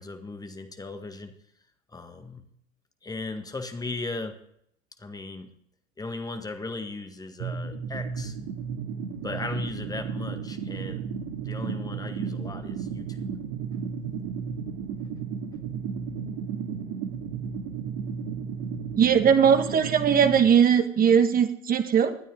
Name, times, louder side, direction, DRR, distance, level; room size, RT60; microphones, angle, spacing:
voice 1, 0.0-1.4 1.9-2.5 3.0-4.4 5.0-5.5 6.0-8.4 9.2-11.1 11.4-13.4, left 3 dB, 10° left, 7 dB, 1.6 m, -37 dB
sound 1, 7.4-20.4, right 6 dB, 45° right, 2.4 m, -33 dB
voice 2, 19.0-22.2, right 7 dB, 20° right, 9 dB, 1.6 m, -20 dB
20.0 x 12.5 x 3.8 m, 0.71 s
figure-of-eight pair, 90°, 40 cm